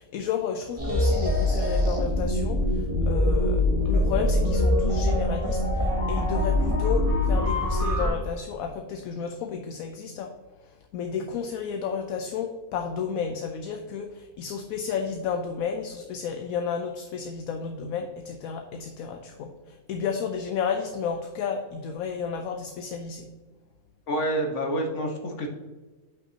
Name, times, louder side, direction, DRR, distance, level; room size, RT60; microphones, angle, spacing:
voice 1, 0.0-10.3 10.9-23.3, left 6 dB, 75° left, 5 dB, 1.0 m, -32 dB
sound 1, 0.8-8.1, left 1 dB, 20° right, 2.2 m, -23 dB
voice 2, 24.1-25.5, right 1 dB, 55° left, 2 dB, 1.4 m, -28 dB
8.1 x 5.8 x 2.8 m, 1.3 s
omnidirectional pair, 1.6 m